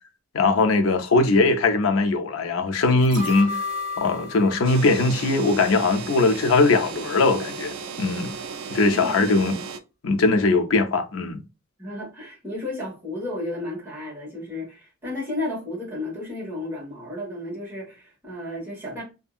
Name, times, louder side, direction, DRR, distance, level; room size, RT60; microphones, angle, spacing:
voice 1, 0.3-3.6 4.0-8.4 8.7-9.6 10.0-11.4, left 3 dB, 75° left, 0.5 m, -20 dB
sound 1, 3.0-6.2 6.5-6.6, left 3 dB, 40° right, 0.9 m, -34 dB
sound 2, 4.6-9.8, right 5 dB, 75° right, 0.3 m, -35 dB
voice 2, 8.9-9.3 11.8-19.0, left 2 dB, 10° right, 1.4 m, -33 dB
2.7 x 2.6 x 2.4 m
head